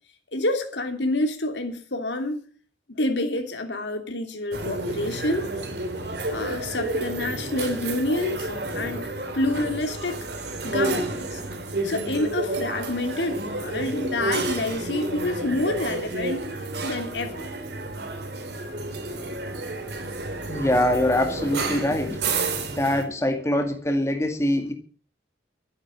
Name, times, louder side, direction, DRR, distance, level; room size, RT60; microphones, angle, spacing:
voice 1, 0.3-2.4 2.9-5.5 6.3-9.1 9.3-11.4 11.8-16.4 16.8-17.5, left 2 dB, 85° left, 5 dB, 3.1 m, -28 dB
sound 1, 4.5-23.0, right 2 dB, 65° right, 2.9 m, -30 dB
voice 2, 20.5-22.2 22.6-24.7, left 1 dB, 15° left, 4 dB, 2.1 m, -23 dB
13.0 x 9.7 x 7.6 m, 0.41 s
head